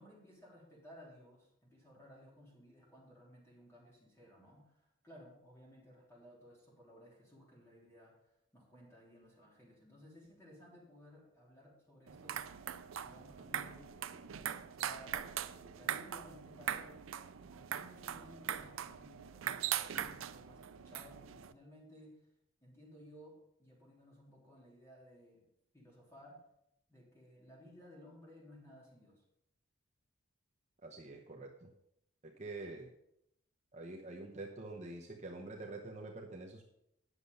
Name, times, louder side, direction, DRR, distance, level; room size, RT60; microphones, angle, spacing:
voice 1, 0.0-12.6 13.0-14.4 14.7-17.0 17.4-22.2 22.6-25.4 25.7-26.4 26.9-29.2, equal, 15° left, -5 dB, 3.4 m, -58 dB
sound 1, 12.1-21.5, right 10 dB, 70° right, 0.4 m, -41 dB
voice 2, 30.8-31.7 32.2-32.9 33.7-36.6, right 2 dB, 35° right, 0 dB, 0.9 m, -46 dB
9.8 x 6.8 x 5.4 m, 0.78 s
head